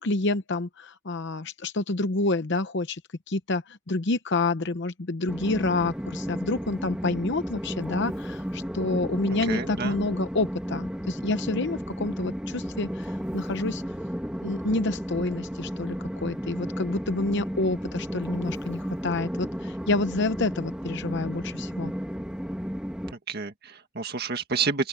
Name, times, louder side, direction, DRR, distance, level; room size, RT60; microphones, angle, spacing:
voice 1, 0.0-3.0 3.3-13.8 14.4-21.9, left 2 dB, 55° left, 0.8 m, -28 dB
Train, 5.3-23.1, equal, 5° right, 2.2 m, -33 dB
voice 2, 9.5-10.0 23.3-24.9, right 4 dB, 50° right, 1.8 m, -29 dB
open air
head